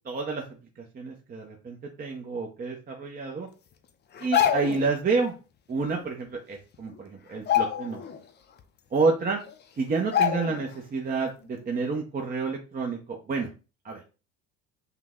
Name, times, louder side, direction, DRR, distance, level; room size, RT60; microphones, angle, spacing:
voice 1, 0.0-0.4 0.8-3.5 4.2-5.3 5.7-8.0 8.9-9.4 9.8-13.5 13.8-14.0, right 4 dB, 25° right, 1 dB, 0.7 m, -29 dB
sound 1, 4.1-4.9 6.3-6.4 6.7-7.0 7.4-8.2 8.6-8.7 9.5-9.6 10.1-10.7 11.1-11.3, left 9 dB, 30° left, 0.5 m, -26 dB
5.7 x 2.2 x 3.6 m, 0.33 s
supercardioid pair, 115°, 37 cm